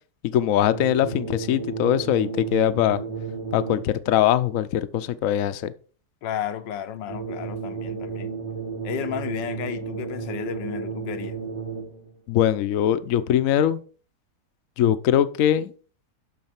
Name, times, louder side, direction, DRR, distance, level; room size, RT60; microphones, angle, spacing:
voice 1, 0.2-3.0 3.5-5.7 12.3-13.8 14.8-15.7, left 10 dB, 60° left, 0.9 m, -22 dB
sound 1, 0.7-4.1 7.1-12.1, right 5 dB, 75° right, 3.4 m, -33 dB
voice 2, 6.2-8.3 8.8-11.4, left 10 dB, 80° left, 1.5 m, -33 dB
12.0 x 4.1 x 5.9 m
omnidirectional pair, 1.9 m